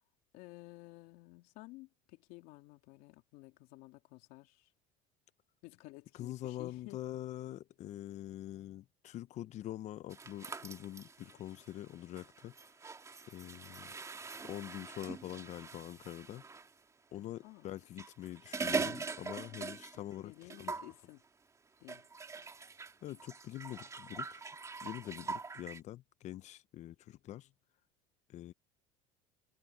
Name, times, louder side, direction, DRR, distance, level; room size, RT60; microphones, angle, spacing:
voice 1, 0.3-4.7 5.6-7.0 17.1-17.7 20.0-21.2 21.8-22.1 25.1-25.4, left 21 dB, 70° left, 3.4 m, -54 dB
voice 2, 6.1-12.5 13.3-13.9 14.4-16.4 17.1-20.3 20.6-20.7 23.0-24.4 24.8-27.5 28.3-28.5, left 13 dB, 50° left, 1.0 m, -45 dB
sound 1, 10.1-16.7 17.8-20.1 20.4-20.9 21.9-25.8, right 4 dB, 20° right, 2.7 m, -42 dB
supercardioid pair, 100°, 15 cm